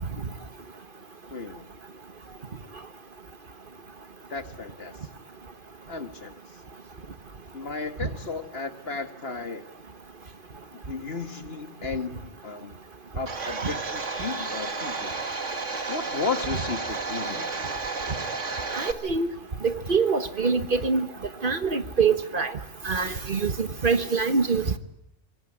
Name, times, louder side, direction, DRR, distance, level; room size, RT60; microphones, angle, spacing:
voice 1, 1.3-1.6 4.3-4.9 5.9-6.4 7.5-9.7 10.9-12.8 13.1-15.2 15.9-17.7, left 4 dB, 55° left, 9 dB, 2.1 m, -34 dB
Domestic sounds home sounds, 13.3-18.9, right 4 dB, 80° right, 2.5 m, -32 dB
voice 2, 18.7-19.3 19.6-21.1 21.4-22.5 22.8-24.8, right 5 dB, 45° right, 11 dB, 1.4 m, -24 dB
25.5 x 22.5 x 10.0 m, 0.79 s
omnidirectional pair, 1.2 m